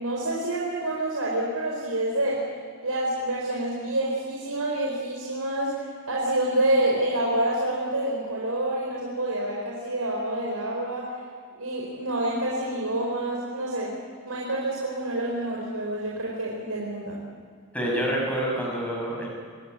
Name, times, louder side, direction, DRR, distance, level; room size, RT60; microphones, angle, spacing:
voice 1, 0.0-2.4 2.8-11.1 11.6-14.0 14.2-17.2, right 1 dB, 85° right, -3 dB, 4.9 m, -27 dB
voice 2, 17.7-19.3, right 1 dB, 5° left, -3 dB, 5.9 m, -27 dB
25.0 x 18.0 x 9.2 m, 2.1 s
head